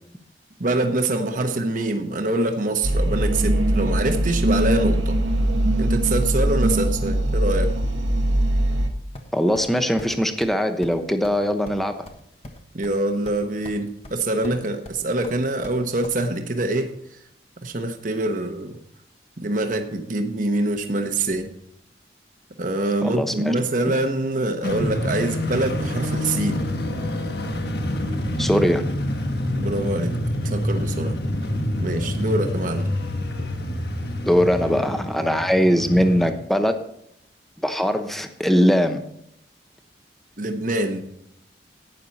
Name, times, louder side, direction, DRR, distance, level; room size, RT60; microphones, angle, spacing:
voice 1, 0.6-5.1 5.8-7.7 12.7-16.9 17.6-18.8 19.4-21.5 22.6-26.6 29.5-30.2 30.4-31.2 31.8-32.9 40.4-41.1, right 2 dB, 45° right, 6 dB, 1.1 m, -25 dB
sound 1, 2.8-8.9, right 1 dB, 90° right, 1.3 m, -21 dB
sound 2, 9.2-9.7 10.0-10.1 10.4-10.6 10.8-11.0 11.2-11.4 11.7-13.0 13.3-13.8 14.0-14.6 14.9-16.2, left 1 dB, 35° left, 1.3 m, -42 dB
voice 2, 9.3-11.9 23.0-23.5 28.4-28.8 34.3-36.8 37.6-39.0, equal, ahead, 7 dB, 0.9 m, -21 dB
sound 3, 24.6-36.3, left 1 dB, 60° left, 1.3 m, -27 dB
12.0 x 9.3 x 4.2 m, 0.72 s
head